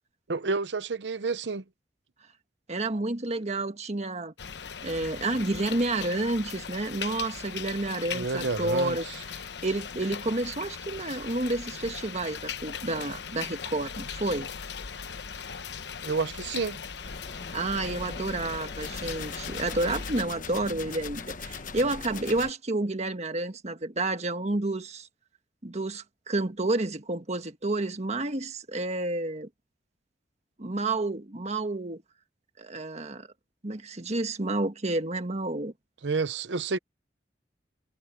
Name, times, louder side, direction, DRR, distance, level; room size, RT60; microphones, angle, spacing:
voice 1, 0.3-1.6 8.1-9.2 16.0-16.8 36.0-36.8, right 4 dB, 80° right, 0.8 m, -30 dB
voice 2, 2.7-4.3 4.8-9.0 9.3-14.5 17.5-25.1 25.6-29.5 30.6-32.0 32.6-33.3 33.6-35.7, right 2 dB, 40° right, 1.5 m, -30 dB
sound 1, 4.4-20.2, left 6 dB, 70° left, 0.9 m, -39 dB
sound 2, 17.0-22.5, left 4 dB, 50° left, 1.0 m, -40 dB
head